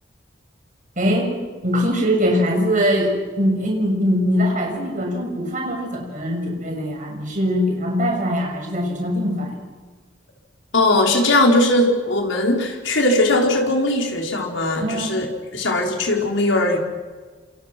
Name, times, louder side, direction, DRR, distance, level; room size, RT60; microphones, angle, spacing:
voice 1, 1.0-1.3 1.6-9.6 14.8-15.1, equal, 40° right, 1 dB, 6.8 m, -22 dB
voice 2, 10.7-15.3 15.5-16.8, left 2 dB, 80° left, 1 dB, 4.9 m, -19 dB
28.5 x 27.5 x 6.2 m, 1.4 s
head